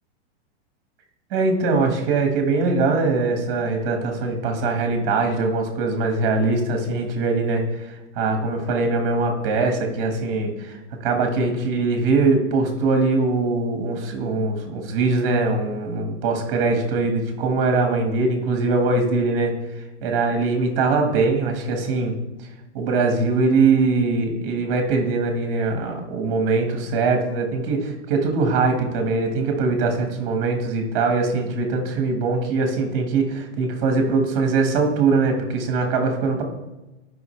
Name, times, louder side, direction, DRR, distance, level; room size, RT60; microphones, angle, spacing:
voice 1, 1.3-22.5 22.7-36.4, right 3 dB, 30° right, 4 dB, 1.4 m, -22 dB
10.5 x 5.4 x 3.2 m, 1.0 s
supercardioid pair, 175°, 34 cm